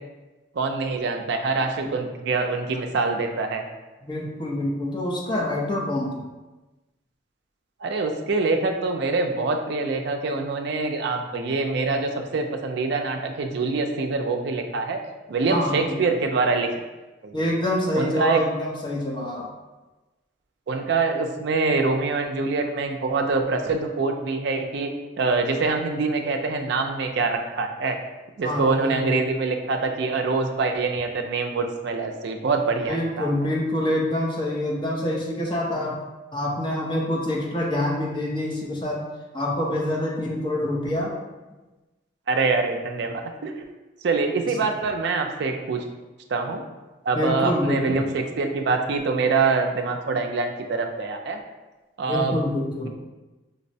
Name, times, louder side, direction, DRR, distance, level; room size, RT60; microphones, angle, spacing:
voice 1, 0.5-3.6 7.8-15.0 15.3-16.7 17.2-17.5 17.9-18.4 20.7-24.9 25.2-28.0 28.4-33.3 42.3-43.6 44.0-45.8 46.3-46.6 47.0-51.4 52.0-52.4, right 4 dB, 60° right, 4 dB, 0.4 m, -25 dB
voice 2, 4.0-6.1 15.5-16.2 17.3-19.5 28.4-29.2 32.9-36.0 36.3-39.0 39.3-41.1 44.5-44.7 47.1-48.1 52.1-52.9, left 1 dB, 25° left, -3 dB, 0.6 m, -26 dB
5.1 x 2.1 x 2.6 m, 1.1 s
head